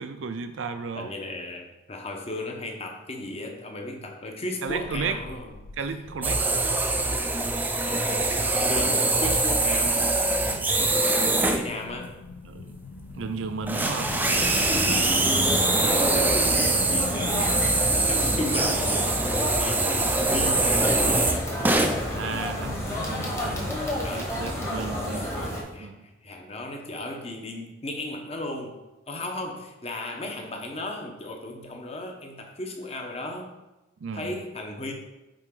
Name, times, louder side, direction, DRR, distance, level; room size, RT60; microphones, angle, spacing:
voice 1, 0.0-1.1 4.6-5.2 5.8-6.4 10.5-11.4 12.4-12.7 13.1-14.1 22.1-23.8 24.1-25.3 25.8-26.1 34.0-34.3, right 5 dB, 80° right, 8 dB, 0.5 m, -34 dB
voice 2, 1.0-5.5 7.8-10.1 10.7-12.1 14.1-14.6 15.1-21.4 21.9-22.2 24.0-24.3 25.1-25.3 25.7-28.8 29.1-33.5 34.1-34.9, left 1 dB, 30° left, 2 dB, 0.9 m, -35 dB
sound 1, 4.7-23.9, left 3 dB, 85° left, 0.4 m, -41 dB
sound 2, 6.2-11.7 13.0-13.1 13.7-22.0 22.6-23.0 23.5-23.6 24.1-24.2, right 2 dB, 10° right, 0.4 m, -24 dB
sound 3, 14.0-25.6, equal, 15° left, 1.1 m, -31 dB
9.0 x 3.7 x 3.8 m, 1.0 s
head